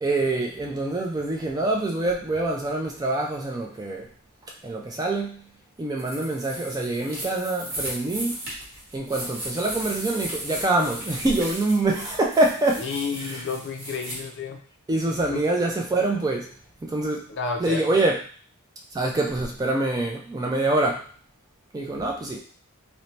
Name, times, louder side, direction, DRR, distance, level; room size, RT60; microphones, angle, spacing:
voice 1, 0.0-4.1 4.6-5.4 5.8-8.4 8.9-12.9 13.2-13.4 14.9-16.5 16.8-17.3 17.6-18.1 18.9-21.1 21.7-22.4, right 2 dB, 15° right, 0 dB, 0.3 m, -25 dB
sound 1, 6.0-14.2, right 1 dB, 45° right, 1.2 m, -36 dB
voice 2, 12.8-14.6 15.3-15.4 17.3-18.0, left 5 dB, 55° left, 3 dB, 0.4 m, -31 dB
2.7 x 2.1 x 3.1 m, 0.43 s
head